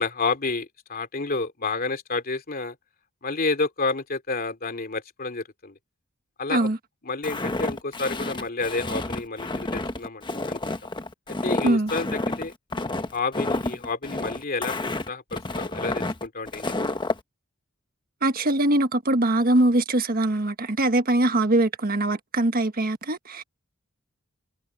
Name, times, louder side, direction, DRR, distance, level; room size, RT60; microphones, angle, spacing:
voice 1, 0.0-2.7 3.2-5.8 6.4-6.7 7.0-10.6 11.4-12.5 13.1-17.0, left 3 dB, 45° left, 2.7 m, -30 dB
Walk footsteps, 7.2-17.2, left 2 dB, 20° left, 1.1 m, -29 dB
voice 2, 18.2-23.4, right 1 dB, 45° right, 1.4 m, -22 dB
head